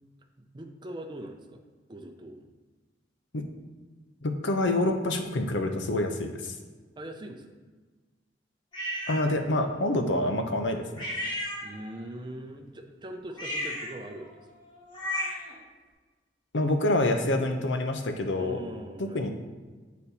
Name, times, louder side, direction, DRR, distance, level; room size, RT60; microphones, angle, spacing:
voice 1, 0.4-1.6 1.9-2.5 7.0-7.5 11.6-14.4 18.3-19.3, right 1 dB, 25° right, 4 dB, 0.6 m, -41 dB
voice 2, 4.2-6.5 9.1-11.0 16.5-18.6 19.0-19.3, left 1 dB, 85° left, 5 dB, 0.7 m, -27 dB
sound 1, 8.7-9.2 11.0-12.0 13.3-15.5, left 1 dB, 25° left, 1.5 m, -34 dB
8.4 x 4.2 x 4.1 m, 1.3 s
head